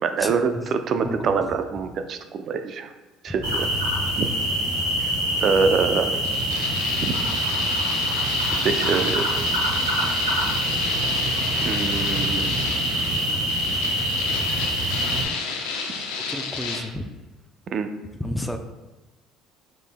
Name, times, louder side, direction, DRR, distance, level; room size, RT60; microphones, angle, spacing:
voice 1, 0.0-2.9 3.2-3.7 4.2-4.3 5.4-6.2 7.0-7.1 8.6-9.3 11.6-12.5 17.7-17.9, right 5 dB, 50° right, 8 dB, 0.4 m, -24 dB
sound 1, 3.4-15.2, equal, 90° right, 1.0 m, -25 dB
sound 2, 6.2-16.8, left 4 dB, 85° left, 0.7 m, -31 dB
voice 2, 16.3-17.0 18.2-18.6, left 1 dB, 5° left, 5 dB, 0.5 m, -30 dB
5.2 x 4.4 x 2.2 m, 1.1 s
hypercardioid pair, 70°, 0 cm